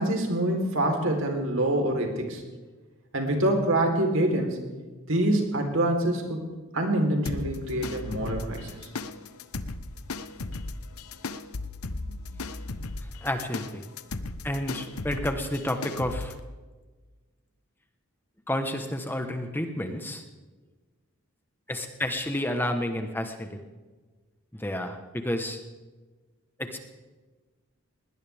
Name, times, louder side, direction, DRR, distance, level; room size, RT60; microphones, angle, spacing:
voice 1, 0.0-2.4 3.1-4.6 5.1-6.4 6.7-8.9, right 1 dB, 65° right, 3 dB, 3.8 m, -25 dB
sound 1, 7.3-16.4, left 3 dB, 90° left, 1.0 m, -36 dB
voice 2, 13.2-13.8 14.4-16.3 18.5-20.2 21.7-23.6 24.5-25.6 26.6-26.8, left 1 dB, 10° left, 6 dB, 1.2 m, -30 dB
21.0 x 19.0 x 3.5 m, 1.3 s
head